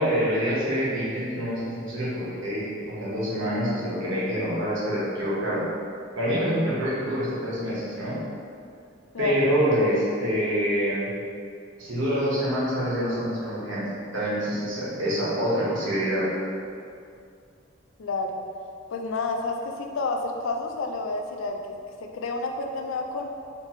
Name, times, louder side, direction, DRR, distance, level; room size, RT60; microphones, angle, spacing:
voice 1, 0.0-5.6 6.1-8.2 9.2-11.1 11.8-16.3, equal, 75° right, -8 dB, 1.3 m, -26 dB
voice 2, 18.0-18.4 18.9-23.3, left 3 dB, 85° left, 3 dB, 0.4 m, -30 dB
4.0 x 3.4 x 3.1 m, 2.4 s
head